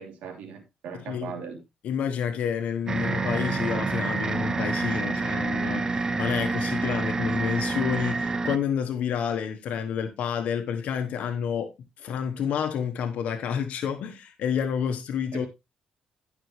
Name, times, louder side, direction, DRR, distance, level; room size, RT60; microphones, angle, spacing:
voice 1, 0.0-1.6 15.3-15.5, right 6 dB, 90° right, 2.9 m, -39 dB
voice 2, 1.8-11.7 12.0-15.5, left 8 dB, 75° left, 1.1 m, -29 dB
sound 1, 2.9-8.6, right 3 dB, 25° right, 0.5 m, -28 dB
14.0 x 6.1 x 3.2 m
cardioid pair, 120°, 2 cm